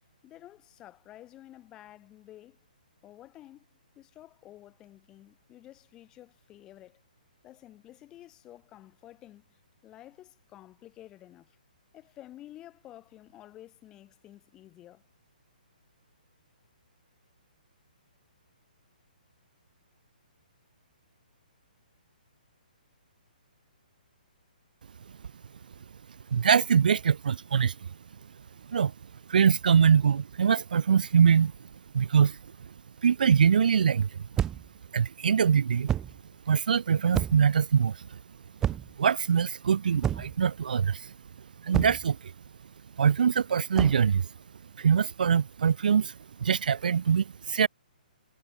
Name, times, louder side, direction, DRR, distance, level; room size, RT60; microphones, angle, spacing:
voice 1, 0.2-2.6 3.0-3.7 4.0-7.0 7.4-9.6 9.8-11.6 11.9-15.0, left 14 dB, 15° left, 2.2 m, -51 dB
voice 2, 26.3-28.0 28.7-28.9 29.3-31.5 31.9-32.7 33.0-34.3 34.9-35.9 36.5-38.2 39.0-41.1 41.6-42.3 43.0-44.3 44.8-47.7, right 7 dB, 65° right, 0.4 m, -23 dB
sound 1, 34.4-34.8 35.9-36.2 37.1-37.6 38.6-39.0 40.0-40.4 41.7-42.1 43.7-44.1, right 10 dB, 10° right, 0.6 m, -29 dB
hypercardioid pair, 170°, 5 cm